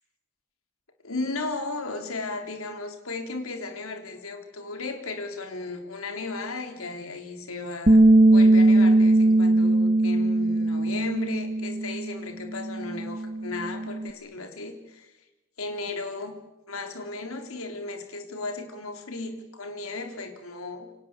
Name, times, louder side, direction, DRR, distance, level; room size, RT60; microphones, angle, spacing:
voice 1, 1.0-8.0 8.3-15.1 15.6-16.4 16.7-20.9, left 3 dB, 80° left, 5 dB, 3.6 m, -35 dB
Bass guitar, 7.9-12.2 12.5-14.1, right 2 dB, 30° right, 1.5 m, -20 dB
28.5 x 25.0 x 8.3 m, 1.0 s
head